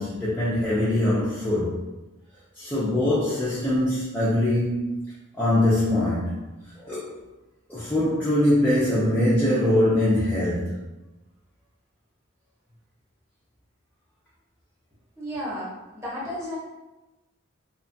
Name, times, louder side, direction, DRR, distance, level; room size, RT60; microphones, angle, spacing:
voice 1, 0.0-1.8 2.6-5.0 5.4-6.4 6.8-7.1 7.7-10.9, left 1 dB, 10° left, -10 dB, 0.4 m, -23 dB
voice 2, 15.2-16.6, equal, 15° right, -8 dB, 0.9 m, -33 dB
2.8 x 2.2 x 2.6 m, 1.1 s
head